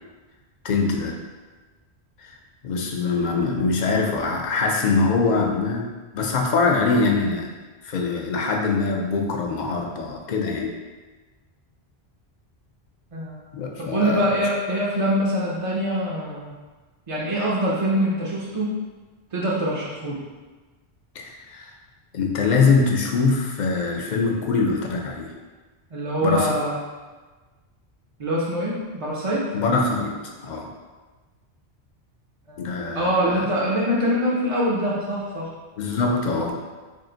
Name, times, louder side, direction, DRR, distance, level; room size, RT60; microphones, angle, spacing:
voice 1, 0.6-1.2 2.2-2.3 2.6-7.5 7.8-10.7 13.5-14.3 21.2-21.7 22.1-25.3 26.2-26.5 29.5-30.2 30.4-30.7 32.6-33.5 35.8-36.6, left 4 dB, 55° left, 1 dB, 0.5 m, -23 dB
voice 2, 13.9-16.5 17.1-18.7 19.3-20.2 25.9-26.8 28.2-29.4 32.5-32.6 32.9-35.5, equal, 40° right, -5 dB, 0.5 m, -24 dB
3.6 x 2.4 x 3.8 m, 1.3 s
omnidirectional pair, 1.1 m